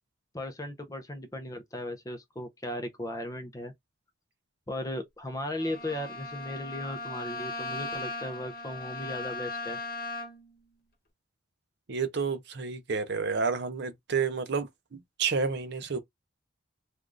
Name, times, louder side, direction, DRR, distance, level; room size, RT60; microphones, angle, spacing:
voice 1, 0.3-3.7 4.7-9.8, left 1 dB, 15° left, 0.5 m, -37 dB
Bowed string instrument, 5.5-10.5, left 2 dB, 45° left, 1.0 m, -38 dB
voice 2, 11.9-16.0, right 5 dB, 55° right, 0.5 m, -30 dB
3.3 x 2.4 x 2.4 m
head